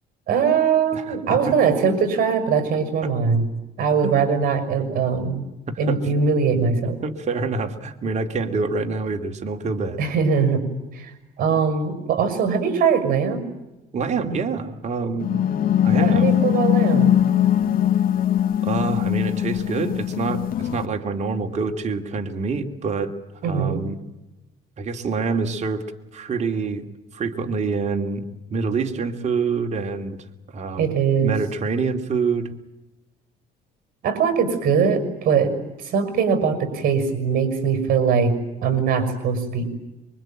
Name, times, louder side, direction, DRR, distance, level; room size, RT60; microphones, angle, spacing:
voice 1, 0.3-3.5 3.8-5.4 5.8-7.0 10.0-10.6 10.9-11.1 11.4-13.4 15.3-15.4 15.9-17.1 23.4-23.9 30.8-31.3 34.0-35.5 35.8-38.3 38.6-39.7, right 6 dB, 60° right, 10 dB, 6.2 m, -21 dB
voice 2, 4.0-4.9 5.7-6.0 6.8-10.0 13.9-15.3 15.8-16.3 18.6-23.1 23.4-24.0 24.8-25.8 26.1-26.8 27.1-28.2 28.5-30.2 30.5-30.9 31.2-32.5, right 4 dB, 40° right, 4 dB, 2.7 m, -26 dB
sound 1, 15.2-20.9, left 10 dB, 60° left, 2.6 m, -20 dB
26.5 x 24.0 x 9.0 m, 0.97 s
cardioid pair, 110°, 17 cm